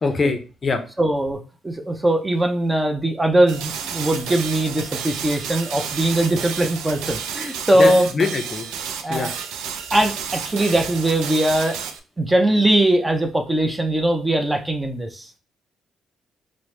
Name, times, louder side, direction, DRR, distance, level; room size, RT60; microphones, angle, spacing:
voice 1, 0.0-0.8 7.7-8.7 9.1-9.3, left 4 dB, 40° left, 7 dB, 0.5 m, -23 dB
voice 2, 1.0-8.1 9.0-9.3 9.9-11.8 12.2-15.3, right 1 dB, 15° right, 4 dB, 0.6 m, -20 dB
sound 1, 3.5-12.0, right 7 dB, 90° right, 0.4 m, -31 dB
4.5 x 2.1 x 3.2 m, 0.35 s
cardioid pair, 90°, 0 cm